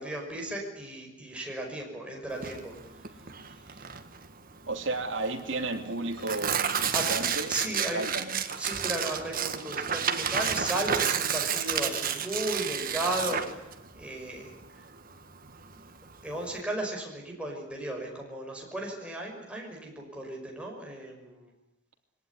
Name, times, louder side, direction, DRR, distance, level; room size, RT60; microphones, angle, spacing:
voice 1, 0.0-3.3 3.7-3.9 6.9-7.1 7.5-8.0 8.6-13.6 14.0-14.5 14.8-14.9 15.7-15.8 16.2-21.5, right 1 dB, 5° right, -1 dB, 5.8 m, -35 dB
Tearing, 2.3-16.6, right 7 dB, 45° right, 1.6 m, -31 dB
voice 2, 4.7-8.3, right 2 dB, 65° right, 3 dB, 3.1 m, -33 dB
23.0 x 18.5 x 9.9 m, 0.92 s
head